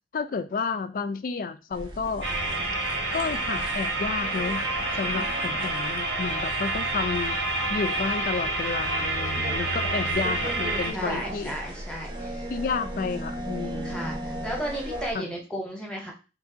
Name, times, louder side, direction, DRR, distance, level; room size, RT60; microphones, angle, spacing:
voice 1, 0.1-2.3 3.1-4.6 4.9-7.4 7.7-11.5 12.5-14.1 15.1-15.3, left 5 dB, 50° left, 11 dB, 0.3 m, -31 dB
sound 1, 1.7-15.1, right 1 dB, 25° right, 0.6 m, -38 dB
sound 2, 2.2-10.9, right 2 dB, 90° right, 1.1 m, -28 dB
voice 2, 5.1-5.7 10.9-12.5 13.8-16.1, equal, 5° left, 0 dB, 0.8 m, -35 dB
3.0 x 2.5 x 3.8 m, 0.31 s
head